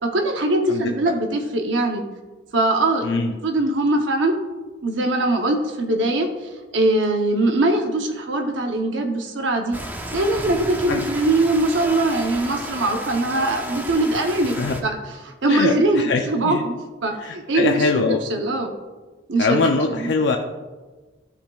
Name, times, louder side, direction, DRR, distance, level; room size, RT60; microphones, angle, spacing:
voice 1, 0.0-2.0 2.5-4.3 4.8-9.8 10.1-14.9 15.2-16.7 17.0-17.9 18.3-18.7 19.3-19.7 20.0-20.1, right 2 dB, 75° right, 3 dB, 0.7 m, -21 dB
Rain, 9.7-14.8, right 1 dB, 10° right, 0.5 m, -33 dB
voice 2, 15.5-16.6 17.2-18.2 19.4-20.4, left 4 dB, 70° left, 3 dB, 0.5 m, -22 dB
13.0 x 5.0 x 2.3 m, 1.3 s
head